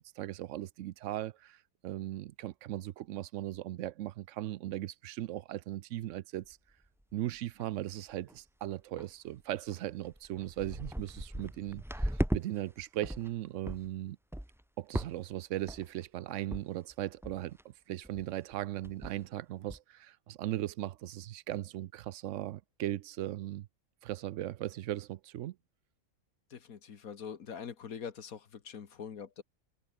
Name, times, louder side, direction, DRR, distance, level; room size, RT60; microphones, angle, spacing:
voice 1, 0.0-6.6 7.1-14.2 14.8-23.7 24.0-25.6, right 13 dB, 70° right, 0.9 m, -38 dB
sound 1, 6.4-6.5 7.0-7.1 7.4-7.8 8.1-8.4 9.0-9.1 9.7-9.8 10.1-12.4 12.8-13.3 13.7-13.9 14.3-14.6 14.9-15.4 15.7-16.0 16.5-16.6 16.9-17.0 17.2-17.6 18.0-18.3 18.5-18.6 18.8-19.3 19.7-19.8, equal, ahead, 0.8 m, -37 dB
voice 2, 26.5-29.4, left 7 dB, 85° left, 1.9 m, -44 dB
omnidirectional pair, 1.5 m